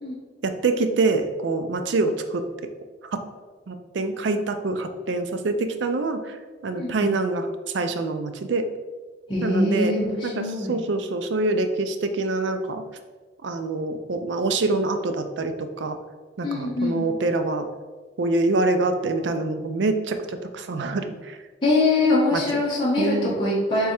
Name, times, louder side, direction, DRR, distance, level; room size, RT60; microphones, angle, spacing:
voice 1, 0.4-2.4 3.7-6.4 6.6-7.5 7.7-8.7 9.4-9.9 10.2-12.8 13.4-16.0 16.4-17.7 18.2-21.4 22.3-22.4 23.0-23.3, right 3 dB, 70° right, 8 dB, 0.4 m, -25 dB
voice 2, 6.7-7.1 9.3-10.8 16.4-17.0 21.6-23.9, left 2 dB, 25° left, -8 dB, 0.9 m, -23 dB
3.5 x 3.2 x 4.3 m, 1.4 s
head